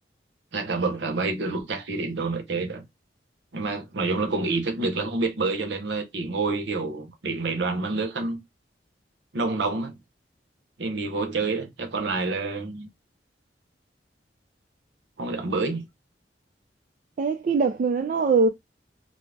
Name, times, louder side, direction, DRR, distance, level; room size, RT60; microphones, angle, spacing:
voice 1, 0.5-2.9 3.5-8.4 9.3-10.0 10.8-12.9 15.2-15.8, right 3 dB, 75° right, 0.7 m, -28 dB
voice 2, 17.2-18.5, right 4 dB, 50° right, 0.3 m, -22 dB
2.4 x 2.0 x 3.2 m
head